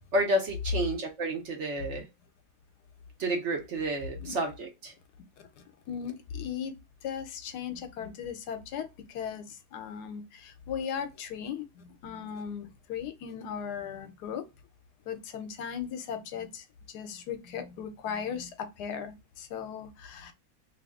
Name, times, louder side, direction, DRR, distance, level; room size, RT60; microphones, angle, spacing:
voice 1, 0.1-2.1 3.2-4.9, right 1 dB, 55° right, 0.9 m, -30 dB
voice 2, 5.9-6.7 7.0-14.5 15.0-20.3, left 7 dB, 85° left, 1.2 m, -37 dB
2.9 x 2.7 x 3.5 m
omnidirectional pair, 1.7 m